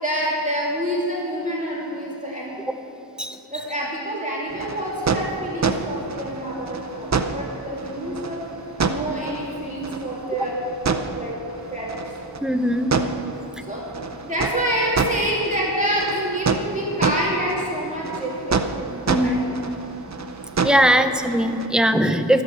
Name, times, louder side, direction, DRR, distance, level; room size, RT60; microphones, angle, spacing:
voice 1, 0.0-2.7 3.5-8.4 8.9-10.6 11.0-11.4 11.7-12.0 13.7-13.8 14.2-19.4 20.9-21.1, equal, 15° right, -6 dB, 2.8 m, -27 dB
sound 1, 4.5-21.7, right 4 dB, 40° right, 0.7 m, -28 dB
voice 2, 12.4-12.9 19.1-19.4 20.6-22.4, equal, ahead, 8 dB, 0.6 m, -19 dB
13.0 x 8.4 x 6.3 m, 2.9 s
wide cardioid pair, 55°, 43 cm